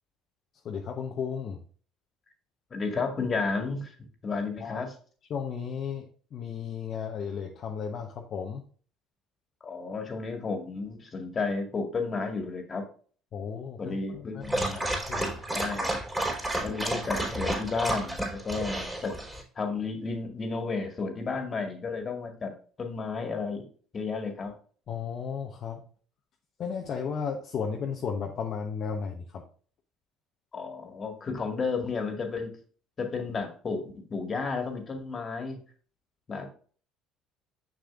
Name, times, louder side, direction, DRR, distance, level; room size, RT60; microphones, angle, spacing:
voice 1, 0.6-1.6 4.6-4.8 5.3-8.6 13.3-15.3 24.9-25.8 26.6-29.4, left 6 dB, 50° left, 1 dB, 1.0 m, -34 dB
voice 2, 2.7-3.9 4.2-4.9 9.6-12.8 13.8-14.8 15.5-15.9 16.6-19.1 19.6-22.5 22.8-23.6 23.9-24.5 30.5-32.5 33.0-35.6 36.3-36.5, left 4 dB, 35° left, 4 dB, 2.0 m, -32 dB
Dog, 14.4-19.4, right 1 dB, 10° right, 3.5 m, -31 dB
6.6 x 6.6 x 2.5 m, 0.42 s
hypercardioid pair, 60°, 0 cm